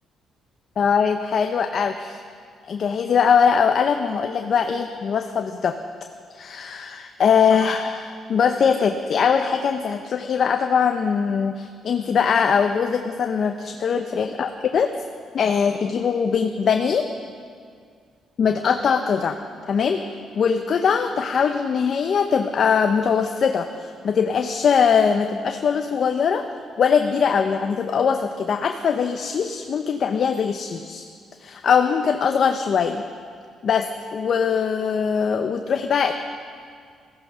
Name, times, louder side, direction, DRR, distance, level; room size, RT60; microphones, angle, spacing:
voice 1, 0.8-2.2 2.7-5.8 6.3-14.9 15.3-17.1 18.4-19.4 19.7-20.0 20.3-26.4 26.8-31.0 31.4-33.0 33.6-36.1, left 6 dB, 55° left, 6 dB, 0.7 m, -21 dB
14.5 x 14.5 x 5.6 m, 2.2 s
cardioid pair, 90°, 0 cm